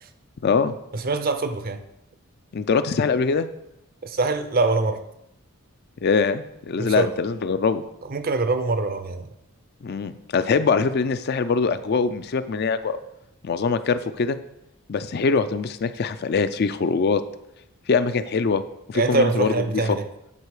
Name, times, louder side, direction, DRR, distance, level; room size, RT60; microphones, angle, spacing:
voice 1, 0.4-0.7 2.5-3.5 6.0-7.8 9.8-13.0 13.4-14.4 14.9-17.2 17.9-18.6 18.9-20.0, left 5 dB, 50° left, 11 dB, 0.4 m, -23 dB
voice 2, 0.9-1.8 4.0-5.0 6.8-7.1 8.1-9.3 18.9-20.1, right 3 dB, 45° right, 9 dB, 0.6 m, -24 dB
9.7 x 4.4 x 4.8 m, 0.84 s
head